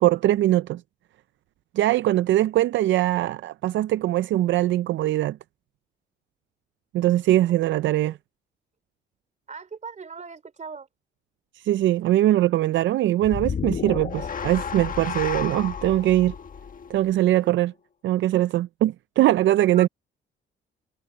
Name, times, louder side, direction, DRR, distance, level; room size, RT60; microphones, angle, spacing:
voice 1, 0.0-0.8 1.7-5.4 6.9-8.1 11.6-16.3 16.9-17.7 18.0-19.9, right 14 dB, 70° right, 0.5 m, -21 dB
voice 2, 9.5-10.9 19.7-19.9, right 5 dB, 35° right, 3.4 m, -40 dB
sound 1, 13.2-17.6, left 6 dB, 45° left, 1.4 m, -32 dB
cardioid pair, 90°, 20 cm